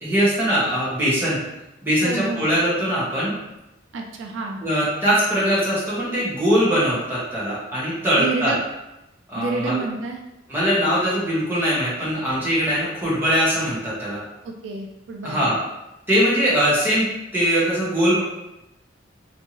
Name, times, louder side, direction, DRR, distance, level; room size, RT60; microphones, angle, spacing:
voice 1, 0.0-1.4 1.8-3.3 4.6-8.5 9.3-9.8 10.5-14.2 15.2-15.6 16.1-17.1 17.3-18.2, equal, 10° right, -9 dB, 1.4 m, -21 dB
voice 2, 2.0-2.5 3.9-4.6 8.2-8.6 9.4-10.2 14.4-15.5, right 3 dB, 85° right, 2 dB, 0.4 m, -29 dB
3.4 x 3.0 x 2.9 m, 0.92 s
head